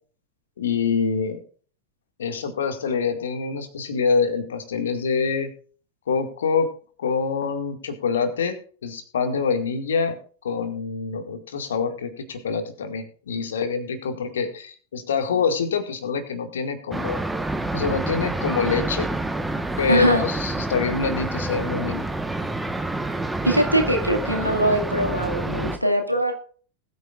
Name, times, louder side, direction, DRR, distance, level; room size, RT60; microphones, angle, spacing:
voice 1, 0.6-1.4 2.2-5.5 6.1-6.7 7.0-10.2 10.4-17.2 17.7-19.1 19.8-22.0, left 5 dB, 65° left, 7 dB, 2.1 m, -25 dB
sound 1, 16.9-25.8, right 2 dB, 5° right, 1.3 m, -28 dB
voice 2, 19.9-20.2 23.4-26.3, right 1 dB, 90° right, 4 dB, 2.1 m, -22 dB
20.0 x 9.3 x 2.5 m, 0.42 s
figure-of-eight pair, 90°, 0 cm